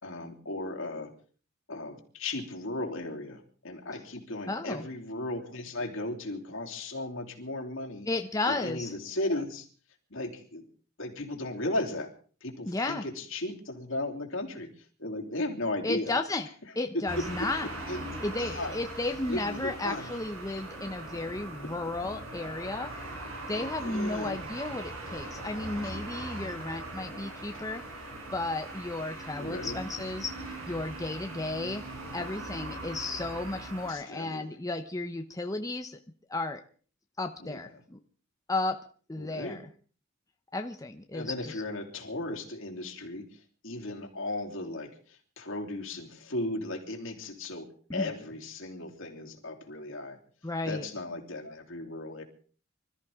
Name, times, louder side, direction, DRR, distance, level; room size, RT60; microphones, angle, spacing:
voice 1, 0.0-1.1 1.7-8.1 8.5-9.7 10.1-10.6 11.0-12.1 12.4-14.7 15.0-16.2 17.4-17.5 17.9-18.0 18.4-18.8 19.3-20.1 23.8-24.4 25.8-26.0 29.3-29.8 33.9-34.6 37.4-37.8 39.2-39.6 41.1-50.2 50.6-52.2, left 2 dB, 70° left, 1 dB, 3.1 m, -36 dB
voice 2, 4.5-4.8 8.1-8.9 12.7-13.0 15.8-16.5 16.8-17.7 18.2-22.9 23.5-27.8 28.3-31.8 32.1-36.0 36.3-36.6 37.2-38.0 38.5-38.8 39.1-39.6 40.5-41.6 47.9-48.1 50.4-50.9, left 2 dB, 15° left, 6 dB, 0.8 m, -33 dB
sound 1, 17.1-33.9, right 2 dB, 80° right, 4.5 m, -40 dB
25.5 x 14.0 x 3.6 m, 0.41 s
head